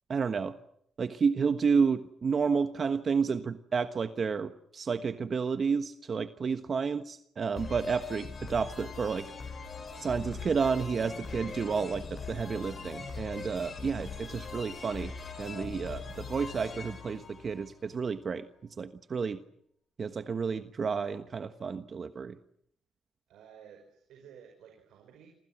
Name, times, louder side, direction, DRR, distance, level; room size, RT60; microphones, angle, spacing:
voice 1, 0.1-0.5 1.0-9.3 10.0-15.1 15.4-18.5 18.8-19.4 20.0-22.4, right 5 dB, 45° right, 10 dB, 1.3 m, -31 dB
sound 1, 7.6-18.2, left 4 dB, 40° left, 7.1 m, -41 dB
voice 2, 23.3-25.3, right 8 dB, 80° right, 3 dB, 5.5 m, -53 dB
28.0 x 27.0 x 6.2 m, 0.69 s
cardioid pair, 90°, 0 cm